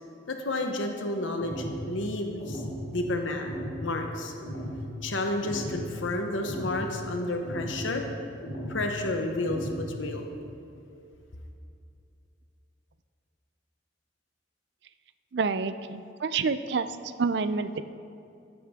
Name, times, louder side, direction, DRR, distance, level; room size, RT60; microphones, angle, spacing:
voice 1, 0.3-2.6 2.9-3.5 3.8-4.3 5.0-8.0 8.7-10.3, left 2 dB, 90° left, 4 dB, 1.0 m, -31 dB
sound 1, 1.4-1.8 2.4-2.8 3.4-3.8 4.4-4.8 5.4-5.8 6.4-6.8 7.4-7.8 8.4-8.8 9.4-9.8, equal, 70° left, 2.3 m, -36 dB
voice 2, 15.3-16.9 17.2-17.8, right 4 dB, 60° right, 12 dB, 0.4 m, -28 dB
13.5 x 9.5 x 3.6 m, 2.5 s
head